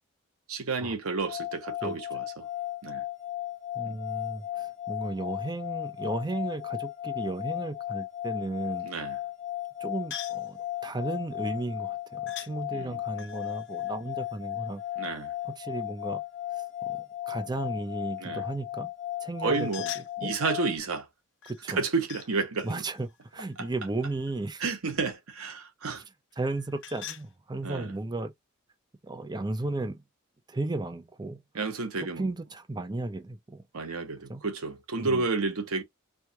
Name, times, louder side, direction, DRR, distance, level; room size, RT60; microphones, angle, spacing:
voice 1, 0.5-2.5 2.8-3.0 3.8-4.0 8.8-9.2 12.7-13.0 15.0-15.3 18.2-18.4 19.4-19.9 20.2-21.1 21.7-22.8 23.6-23.7 24.6-26.0 27.6-27.9 31.5-32.3 33.7-35.8, right 4 dB, 90° right, 0.9 m, -31 dB
sound 1, 1.2-20.8, left 14 dB, 30° left, 0.8 m, -36 dB
voice 2, 3.8-8.9 9.8-14.8 15.4-16.2 16.6-18.9 19.2-19.7 20.2-20.3 21.5-21.8 22.6-24.6 26.4-28.3 29.0-30.0 30.5-31.4 32.0-33.6 34.3-34.4 35.0-35.2, right 2 dB, 20° right, 0.5 m, -34 dB
sound 2, 10.1-10.5 12.3-12.5 13.1-15.0 19.5-20.5 21.4-22.3 22.6-24.5 26.3-27.3, left 10 dB, 55° left, 0.5 m, -44 dB
4.6 x 2.3 x 2.8 m
head